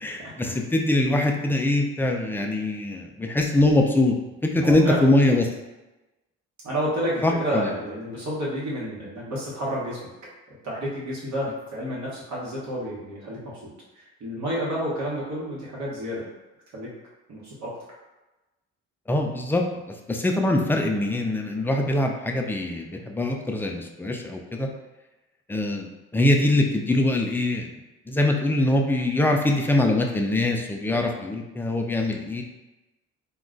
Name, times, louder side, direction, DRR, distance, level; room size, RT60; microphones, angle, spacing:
voice 1, 0.0-4.2 4.4-5.5 7.2-7.7 19.1-19.6 20.1-24.7 25.5-27.7 28.1-32.4, left 1 dB, 5° left, 2 dB, 0.3 m, -23 dB
voice 2, 4.6-5.0 6.6-10.0 10.6-13.7 13.9-16.2 16.7-16.9 17.3-17.7 30.9-31.0, equal, 65° right, -6 dB, 1.1 m, -30 dB
2.3 x 2.2 x 3.7 m, 1.1 s
cardioid pair, 90°, 30 cm